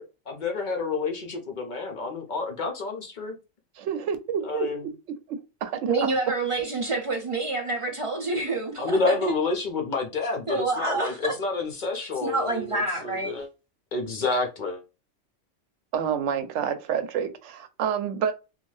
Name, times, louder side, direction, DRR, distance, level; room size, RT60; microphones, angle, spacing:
voice 1, 0.0-3.4 4.4-4.9 8.8-13.5 13.9-14.8, left 3 dB, 50° left, 0.7 m, -29 dB
voice 2, 3.8-4.7 5.3-5.9 15.9-18.3, right 7 dB, 75° right, 0.9 m, -28 dB
voice 3, 5.9-9.1 10.5-11.3 12.2-13.3, right 3 dB, 40° right, 0.4 m, -27 dB
2.6 x 2.3 x 3.1 m
omnidirectional pair, 1.2 m